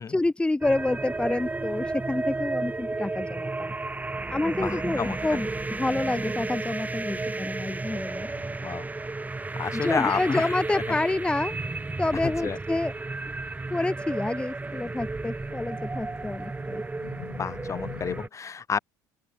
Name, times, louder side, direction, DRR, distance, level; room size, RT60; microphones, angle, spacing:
voice 1, 0.0-3.7 4.3-8.3 9.7-11.5 12.0-12.9 13.7-16.8, left 2 dB, 10° left, 1.2 m, -28 dB
sound 1, 0.6-18.3, right 3 dB, 15° right, 4.2 m, -33 dB
voice 2, 4.6-5.4 8.6-8.9 9.6-11.0 12.1-12.6 17.4-18.8, left 6 dB, 30° left, 2.1 m, -31 dB
sound 2, 5.0-18.2, left 26 dB, 65° left, 5.7 m, -51 dB
open air
hypercardioid pair, 70°, 10 cm